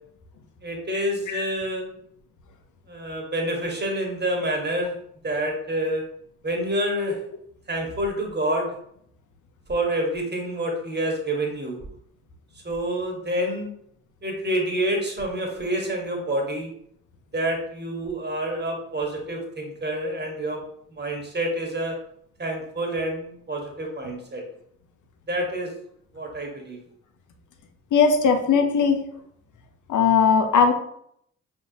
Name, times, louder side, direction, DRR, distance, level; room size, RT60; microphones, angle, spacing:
voice 1, 0.6-1.9 2.9-4.9 5.2-6.0 6.4-7.2 7.7-8.7 9.7-11.8 12.6-13.7 14.2-16.7 17.3-20.6 20.9-22.0 22.4-24.4 25.3-25.7 26.1-26.8, right 1 dB, 30° right, 1 dB, 1.5 m, -27 dB
voice 2, 27.9-29.0 29.9-30.7, left 5 dB, 55° left, 5 dB, 0.9 m, -18 dB
5.4 x 2.7 x 2.9 m, 0.69 s
hypercardioid pair, 45°, 37 cm